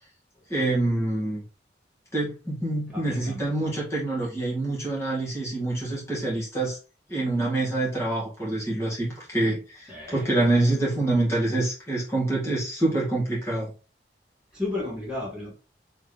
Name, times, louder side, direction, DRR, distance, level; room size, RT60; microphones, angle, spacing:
voice 1, 0.5-1.4 2.1-6.8 7.1-13.7, right 2 dB, 15° left, -6 dB, 2.0 m, -26 dB
voice 2, 2.9-3.7 9.9-10.3 14.5-15.5, left 2 dB, 5° right, -5 dB, 2.0 m, -34 dB
4.1 x 3.6 x 3.3 m, 0.33 s
head